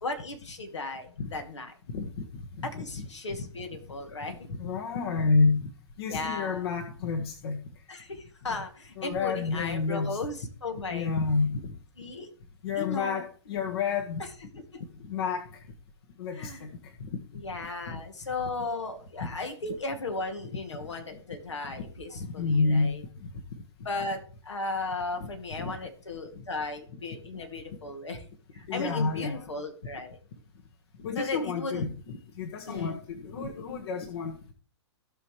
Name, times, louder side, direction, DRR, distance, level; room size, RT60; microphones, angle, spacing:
voice 1, 0.0-1.7 2.6-4.4 6.1-6.7 7.9-11.1 12.0-12.3 12.8-13.2 14.5-14.8 16.3-16.7 17.3-23.0 23.8-28.3 28.5-30.2 31.2-31.8 32.6-33.0, left 3 dB, 85° left, 4 dB, 2.4 m, -36 dB
voice 2, 1.9-3.1 3.4-3.5 4.6-5.7 6.0-7.6 9.0-10.2 10.9-11.8 12.6-14.2 15.0-15.4 16.2-16.7 17.0-17.2 17.6-18.0 19.2-19.3 21.7-21.8 22.1-22.9 23.2-23.3 25.2-25.3 25.6-25.7 28.7-29.5 31.0-31.9 32.4-34.5, left 4 dB, 60° left, 4 dB, 1.7 m, -29 dB
16.5 x 5.7 x 3.2 m, 0.41 s
hypercardioid pair, 120°, 15 cm